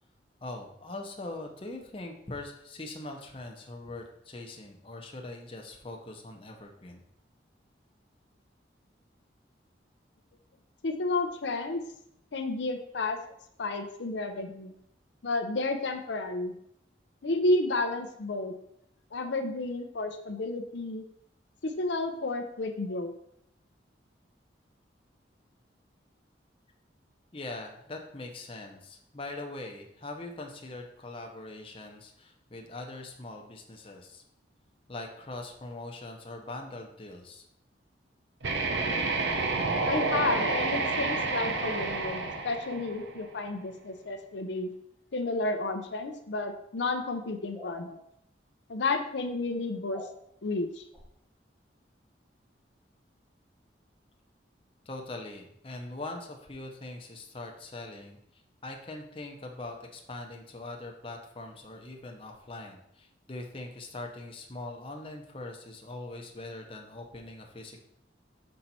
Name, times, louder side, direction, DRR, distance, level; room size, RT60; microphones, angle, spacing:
voice 1, 0.4-7.0 27.3-34.2 34.9-37.4 54.9-67.8, left 2 dB, 30° left, 1 dB, 0.8 m, -42 dB
voice 2, 10.8-11.8 12.3-13.2 13.6-14.7 15.2-16.5 17.2-18.5 19.1-21.0 21.6-23.1 39.8-44.7 45.1-48.0 48.7-50.1 50.4-50.8, left 2 dB, 75° left, 6 dB, 0.6 m, -31 dB
sound 1, 38.4-43.3, right 3 dB, 75° right, 0.8 m, -29 dB
sound 2, 47.5-47.8 49.9-50.1 50.9-51.1, left 1 dB, ahead, 1.1 m, -44 dB
6.5 x 4.4 x 4.2 m, 0.74 s
head